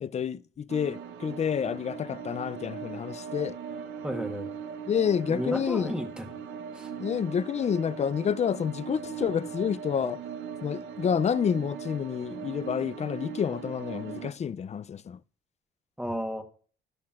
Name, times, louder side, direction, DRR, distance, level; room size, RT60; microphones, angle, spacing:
voice 1, 0.0-3.6 4.9-5.9 7.0-10.2 10.6-15.2, left 7 dB, 35° left, 0.4 m, -29 dB
sound 1, 0.7-14.3, right 7 dB, 80° right, 0.8 m, -39 dB
voice 2, 4.0-4.5 5.3-6.3 6.7-6.9 16.0-16.4, equal, 5° right, 1.2 m, -33 dB
13.0 x 10.5 x 2.4 m
cardioid pair, 90°, 20 cm